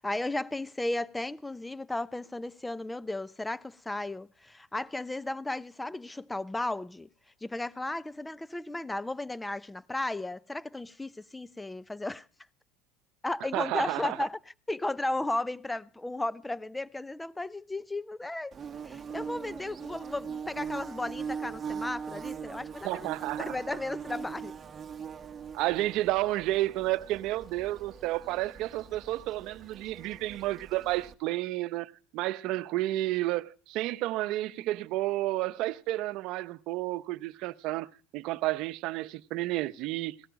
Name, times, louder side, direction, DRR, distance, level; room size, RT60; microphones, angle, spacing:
voice 1, 0.0-7.1 7.4-12.3 13.2-14.4 14.7-18.6 18.8-23.1 23.4-24.6, left 2 dB, 10° left, 0.6 m, -34 dB
voice 2, 13.5-14.2 22.8-23.6 25.5-37.9 38.1-40.1, right 17 dB, 60° right, 0.8 m, -31 dB
Bird / Buzz, 18.5-31.1, right 6 dB, 30° right, 1.2 m, -41 dB
17.5 x 13.5 x 5.2 m
supercardioid pair, 100°, 0 cm